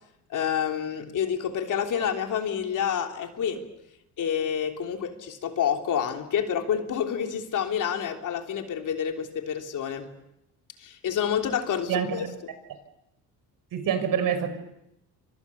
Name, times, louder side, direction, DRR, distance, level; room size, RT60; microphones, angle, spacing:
voice 1, 0.3-3.6 4.2-10.1 10.8-12.2, left 8 dB, 55° left, 4 dB, 3.4 m, -28 dB
voice 2, 11.9-12.3 13.7-14.5, right 8 dB, 60° right, 9 dB, 5.8 m, -26 dB
29.0 x 26.0 x 7.1 m, 0.84 s
cardioid pair, 120°, 38 cm